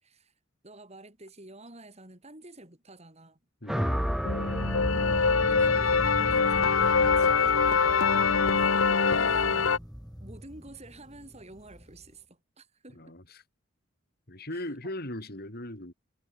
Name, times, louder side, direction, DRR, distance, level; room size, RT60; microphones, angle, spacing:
voice 1, 0.0-0.3 0.6-3.4 5.5-7.9 8.5-9.7 10.2-13.0 14.5-14.9, right 2 dB, 30° right, 5.4 m, -49 dB
sound 1, 3.7-11.9, equal, ahead, 0.4 m, -35 dB
sound 2, 3.8-12.2, left 1 dB, 20° left, 7.3 m, -49 dB
sound 3, 4.2-9.8, left 5 dB, 75° left, 1.2 m, -24 dB
voice 2, 12.9-13.4 14.3-15.9, left 1 dB, 50° left, 5.4 m, -38 dB
head